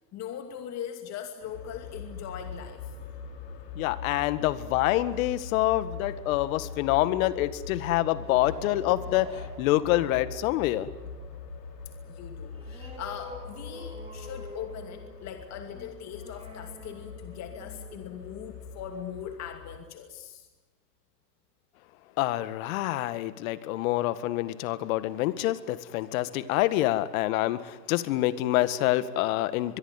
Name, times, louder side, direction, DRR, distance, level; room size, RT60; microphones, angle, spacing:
voice 1, 0.1-3.0 12.1-20.5, left 9 dB, 35° left, 5 dB, 2.6 m, -40 dB
sound 1, 1.4-19.8, left 5 dB, 75° left, 4.3 m, -42 dB
voice 2, 3.8-10.9 22.2-29.8, left 15 dB, 55° left, 14 dB, 1.9 m, -26 dB
sound 2, 8.1-19.2, equal, 10° right, 7.9 m, -48 dB
23.5 x 23.0 x 9.8 m, 1.2 s
hypercardioid pair, 115°, 49 cm